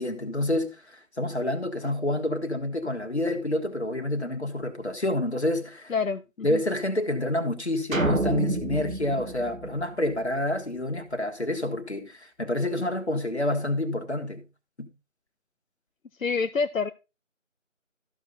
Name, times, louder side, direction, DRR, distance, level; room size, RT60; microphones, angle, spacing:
voice 1, 0.0-5.9 6.4-14.4 14.8-14.9, left 1 dB, 55° left, 1.6 m, -28 dB
voice 2, 5.9-6.6 16.2-16.9, left 5 dB, 80° left, 0.6 m, -27 dB
sound 1, 7.9-10.4, right 3 dB, 85° right, 1.2 m, -29 dB
13.5 x 5.5 x 3.9 m
figure-of-eight pair, 175°, 39 cm